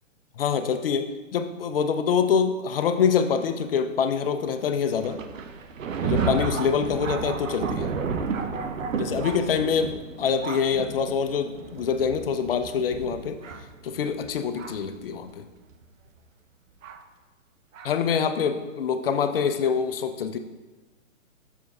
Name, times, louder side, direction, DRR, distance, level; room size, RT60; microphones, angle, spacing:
voice 1, 0.4-5.2 6.0-7.9 9.0-13.4 13.8-15.5 17.8-20.4, left 6 dB, 50° left, 8 dB, 0.4 m, -25 dB
Thunder, 5.0-14.9 15.7-15.8 16.8-17.0 17.7-17.9, right 5 dB, 75° right, 0.7 m, -32 dB
7.1 x 6.0 x 2.3 m, 1.2 s
hypercardioid pair, 145°, 39 cm